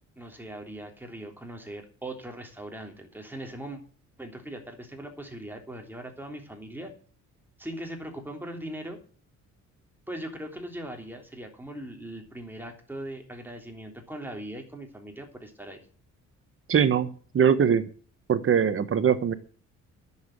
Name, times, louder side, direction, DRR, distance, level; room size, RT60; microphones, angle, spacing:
voice 1, 0.1-3.8 4.2-6.9 7.6-9.0 10.1-15.8, right 1 dB, 5° right, 2 dB, 3.3 m, -40 dB
voice 2, 16.7-17.1 17.3-17.8 18.3-19.3, right 7 dB, 45° right, 13 dB, 1.1 m, -21 dB
10.0 x 7.4 x 7.4 m, 0.42 s
cardioid pair, 90°, 30 cm